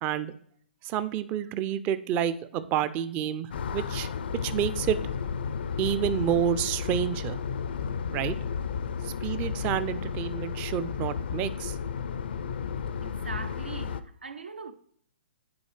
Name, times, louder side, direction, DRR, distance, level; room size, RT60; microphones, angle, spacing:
voice 1, 0.0-0.3 0.8-4.1 4.4-5.0 5.8-7.4 8.1-8.3 9.0-11.8, right 10 dB, 25° right, 0.4 m, -29 dB
sound 1, 3.5-14.0, left 6 dB, 65° left, 0.4 m, -33 dB
voice 2, 13.0-14.7, right 4 dB, 85° right, 0.7 m, -40 dB
9.5 x 4.1 x 3.2 m
hypercardioid pair, 130°, 6 cm